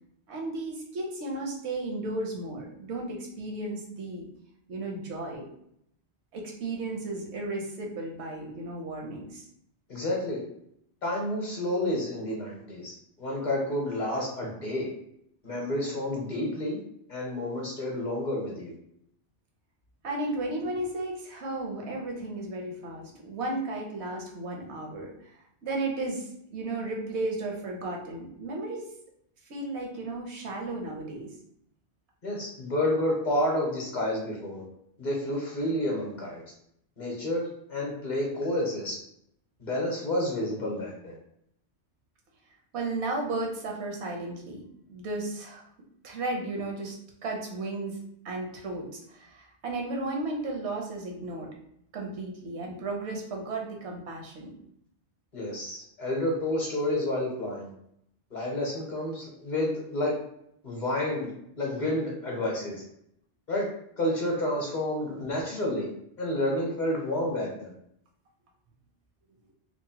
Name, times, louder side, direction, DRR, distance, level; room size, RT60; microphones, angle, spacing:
voice 1, 0.3-4.3 4.7-5.5 6.3-9.4 20.0-25.3 25.6-28.9 29.5-31.3 42.7-44.6 44.9-45.6 46.0-47.0 47.2-51.5 51.9-54.5 65.2-65.3, right 2 dB, 75° right, 0 dB, 0.9 m, -34 dB
voice 2, 9.9-10.4 11.0-14.9 15.4-16.8 17.1-18.7 32.2-34.6 35.0-36.4 37.0-38.9 39.6-41.1 55.3-57.7 58.3-60.1 60.6-62.7 63.5-63.7 64.0-65.9 66.2-67.7, left 1 dB, 45° left, -2 dB, 0.8 m, -30 dB
2.9 x 2.0 x 2.7 m, 0.72 s
omnidirectional pair, 1.2 m